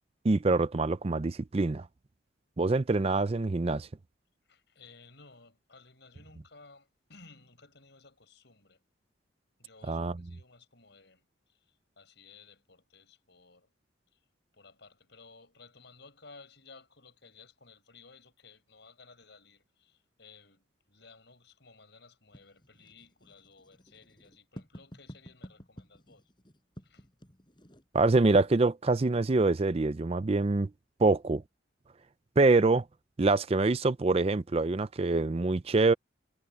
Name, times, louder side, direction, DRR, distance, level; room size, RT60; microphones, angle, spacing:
voice 1, 0.2-1.9 2.6-3.9 9.9-10.1 27.9-30.7 31.0-31.4 32.4-32.8 33.2-35.9, right 3 dB, 30° right, 0.4 m, -25 dB
voice 2, 4.5-8.8 9.6-13.7 14.1-14.2 14.5-26.3 26.8-27.1, left 4 dB, 60° left, 6.2 m, -57 dB
Writing, 22.3-28.3, equal, 25° left, 5.5 m, -51 dB
head